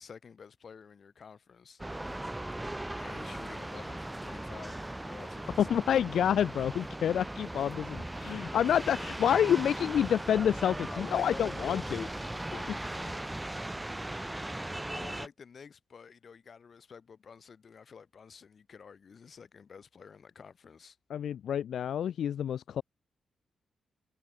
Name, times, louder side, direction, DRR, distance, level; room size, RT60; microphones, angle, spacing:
voice 1, 0.0-1.8 3.0-6.0 8.6-8.7 10.9-13.6 14.9-21.0, left 6 dB, 45° left, 3.5 m, -50 dB
sound 1, 1.8-15.3, right 1 dB, 10° right, 0.3 m, -38 dB
voice 2, 5.6-12.0 21.1-22.8, left 9 dB, 75° left, 0.4 m, -28 dB
wide cardioid pair, 125°, 0 cm